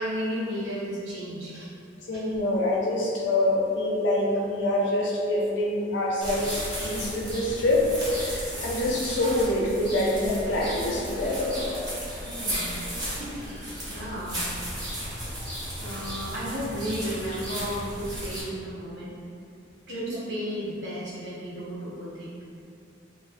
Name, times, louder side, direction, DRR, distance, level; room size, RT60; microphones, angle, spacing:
voice 1, 0.0-1.7 2.1-2.2 12.2-12.7 13.2-14.4 15.8-19.3 19.9-22.4, equal, 65° right, -7 dB, 0.7 m, -34 dB
voice 2, 2.1-11.7 19.9-20.2, left 1 dB, 70° left, -4 dB, 0.5 m, -26 dB
sound 1, 6.2-18.4, equal, 25° right, 0.7 m, -34 dB
2.5 x 2.0 x 2.5 m, 2.3 s
head